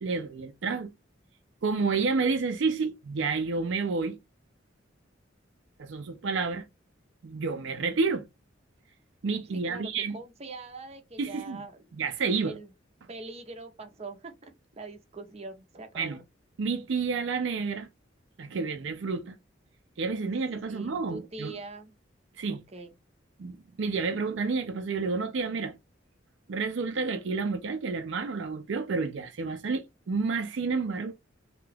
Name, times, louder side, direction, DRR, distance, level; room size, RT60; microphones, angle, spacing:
voice 1, 0.0-0.9 1.6-4.2 5.8-6.6 7.2-8.2 9.2-10.2 11.2-11.6 11.9-12.6 16.0-16.2 16.6-17.9 18.4-19.4 20.0-21.5 22.4-22.6 23.4-25.8 26.5-31.1, right 4 dB, 75° right, 0.5 m, -30 dB
voice 2, 9.5-11.9 12.4-12.7 13.1-14.3 14.8-16.2 20.7-21.9 22.5-22.9, right 3 dB, 35° right, 0.7 m, -43 dB
2.8 x 2.3 x 3.3 m
head